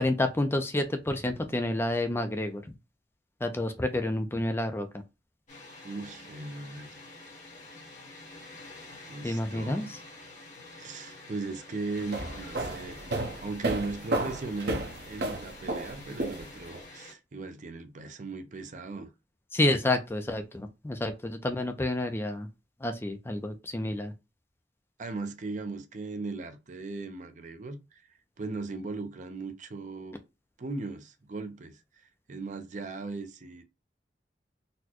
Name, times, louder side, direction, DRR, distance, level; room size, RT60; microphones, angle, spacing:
voice 1, 0.0-2.6 3.4-5.0 9.2-9.9 19.5-22.5 22.8-24.1, left 1 dB, 15° left, 0.4 m, -29 dB
Water, 5.5-17.1, left 2 dB, 40° left, 1.3 m, -48 dB
voice 2, 5.8-7.0 9.1-9.9 10.7-19.1 25.0-28.0 28.4-30.2 30.6-31.8 32.3-33.6, right 3 dB, 45° right, 0.5 m, -38 dB
sound 1, 12.0-16.8, right 2 dB, 60° right, 0.9 m, -32 dB
4.1 x 2.1 x 2.8 m
head